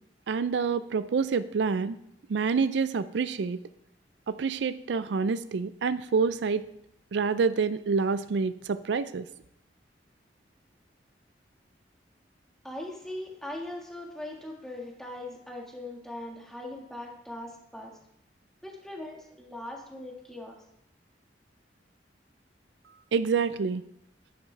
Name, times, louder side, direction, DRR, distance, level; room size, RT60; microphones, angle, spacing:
voice 1, 0.3-2.0 2.3-3.6 4.3-6.7 7.1-9.3 23.1-23.8, right 5 dB, 75° right, 14 dB, 0.4 m, -27 dB
voice 2, 12.6-18.0 18.6-20.6, left 1 dB, 5° left, 0 dB, 1.7 m, -40 dB
11.0 x 9.5 x 3.3 m, 0.78 s
head